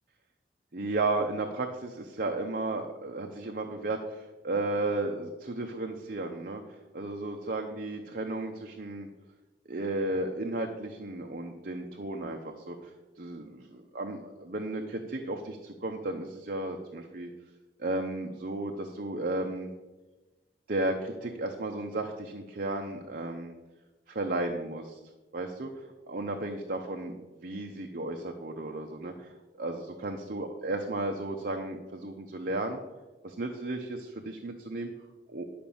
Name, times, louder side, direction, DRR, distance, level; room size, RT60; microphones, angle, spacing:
voice 1, 0.7-9.1 9.7-12.4 12.7-12.9 13.2-17.3 17.8-19.7 20.7-23.5 24.1-25.0 25.3-27.1 27.4-29.3 29.6-32.8 33.2-34.9 35.3-35.5, right 2 dB, 55° right, 3 dB, 0.8 m, -34 dB
11.0 x 5.2 x 7.1 m, 1.2 s
head